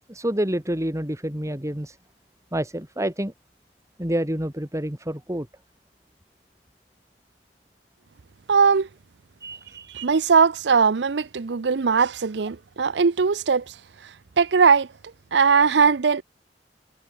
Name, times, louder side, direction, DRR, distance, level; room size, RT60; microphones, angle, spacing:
voice 1, 0.1-2.0 2.5-3.3 4.0-5.5 9.4-9.9, right 1 dB, 20° right, 3.5 m, -28 dB
voice 2, 8.5-8.9 9.9-13.7 14.4-14.9 15.3-16.2, right 5 dB, 70° right, 0.6 m, -19 dB
head